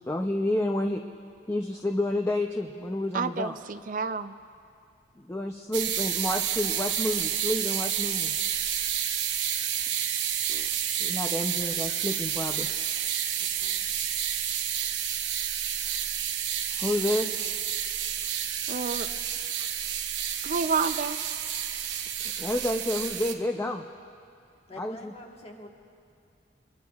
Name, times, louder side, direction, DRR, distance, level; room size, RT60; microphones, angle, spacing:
voice 1, 0.1-1.0 1.5-3.6 5.2-8.6 11.0-12.7 16.8-17.4 22.4-23.8 24.8-25.1, left 1 dB, 15° left, 3 dB, 0.5 m, -30 dB
voice 2, 3.1-4.3 10.5-10.7 15.9-16.0 18.7-19.1 20.4-21.2, right 5 dB, 45° right, 11 dB, 0.4 m, -30 dB
sound 1, 5.7-23.3, right 9 dB, 80° right, 0.9 m, -30 dB
voice 3, 13.4-14.0 24.7-25.7, left 1 dB, 35° left, 1 dB, 1.4 m, -47 dB
27.0 x 21.5 x 2.4 m, 2.4 s
head